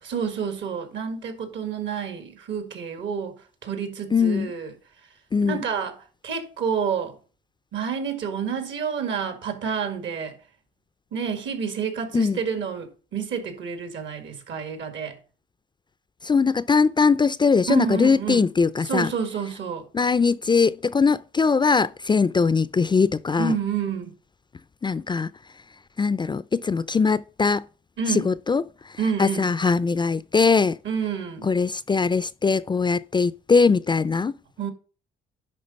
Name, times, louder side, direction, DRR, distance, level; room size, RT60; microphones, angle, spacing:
voice 1, 0.0-3.4 3.6-4.7 5.5-6.0 6.2-7.2 7.7-10.4 11.1-15.2 17.7-18.5 18.8-19.9 23.4-24.1 28.0-28.3 29.0-29.5 30.8-31.5 34.6-34.7, right 6 dB, 70° right, 2.0 m, -29 dB
voice 2, 4.1-4.5 5.3-5.6 12.1-12.4 16.2-19.1 19.9-23.5 24.8-25.3 26.0-27.6 28.1-28.6 29.2-30.8 31.4-34.3, left 5 dB, 25° left, 0.4 m, -21 dB
10.5 x 3.9 x 5.2 m
cardioid pair, 90°, 20 cm